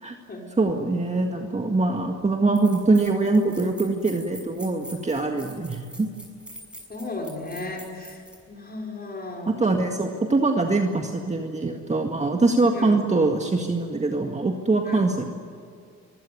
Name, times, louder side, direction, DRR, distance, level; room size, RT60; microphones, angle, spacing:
voice 1, 0.6-6.1 9.5-15.2, right 3 dB, 20° right, 3 dB, 1.9 m, -23 dB
sound 1, 2.5-8.4, equal, 5° right, 6.6 m, -44 dB
voice 2, 6.9-10.0 12.7-13.0 14.9-15.0, left 2 dB, 30° left, 0 dB, 5.5 m, -35 dB
24.5 x 16.0 x 9.6 m, 2.2 s
cardioid pair, 90°, 30 cm